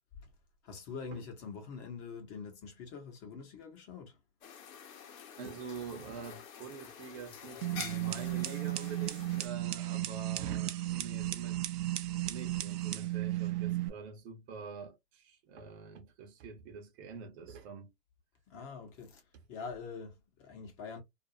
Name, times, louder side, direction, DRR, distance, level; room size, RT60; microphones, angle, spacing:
voice 1, 0.6-4.2 18.5-21.0, left 5 dB, 30° left, 0.9 m, -45 dB
sound 1, 4.4-9.5, left 7 dB, 55° left, 0.9 m, -48 dB
voice 2, 5.4-11.7 12.2-17.9, right 5 dB, 45° right, 0.8 m, -46 dB
sound 2, 7.6-13.9, right 15 dB, 70° right, 0.6 m, -34 dB
2.6 x 2.2 x 2.7 m
hypercardioid pair, 125°, 49 cm